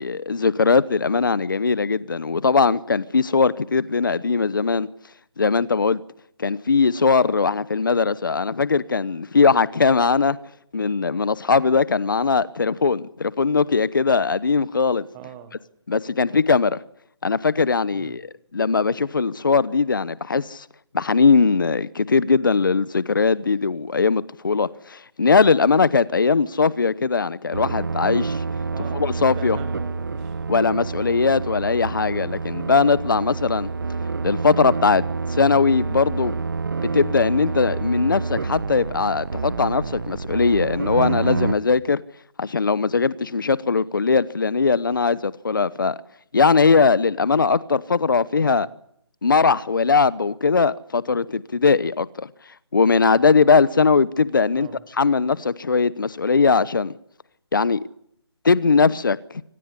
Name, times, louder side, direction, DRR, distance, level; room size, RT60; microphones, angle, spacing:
voice 1, 0.0-4.9 5.4-6.0 6.4-10.4 10.7-15.1 15.9-16.8 17.2-18.2 18.5-20.6 20.9-28.4 29.0-29.6 30.5-33.7 34.2-35.0 35.3-36.4 36.8-42.0 42.4-46.0 46.3-48.7 49.2-52.3 52.7-54.7 55.0-56.9 57.5-57.8 58.4-59.2, left 4 dB, 50° left, 0.9 m, -20 dB
voice 2, 15.1-15.6 17.9-18.2 28.7-30.4 30.9-31.3 48.4-48.7 54.6-54.9, right 9 dB, 5° right, 1.0 m, -42 dB
sound 1, 27.5-41.5, right 4 dB, 50° right, 1.4 m, -28 dB
25.5 x 19.0 x 9.8 m
hypercardioid pair, 175°, 14 cm